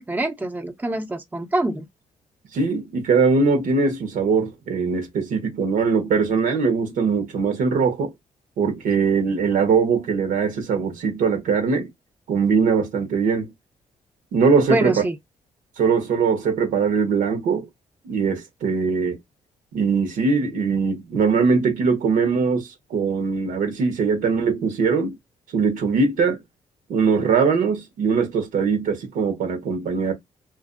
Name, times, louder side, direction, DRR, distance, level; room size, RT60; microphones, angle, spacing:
voice 1, 0.0-1.9 14.7-15.1, right 1 dB, 15° right, 0.7 m, -25 dB
voice 2, 2.5-8.1 8.6-11.9 12.3-13.5 14.3-14.9 15.8-17.7 18.0-19.2 19.7-25.1 25.5-26.4 26.9-30.1, right 5 dB, 90° right, 1.1 m, -21 dB
2.6 x 2.5 x 2.5 m
cardioid pair, 90°, 13 cm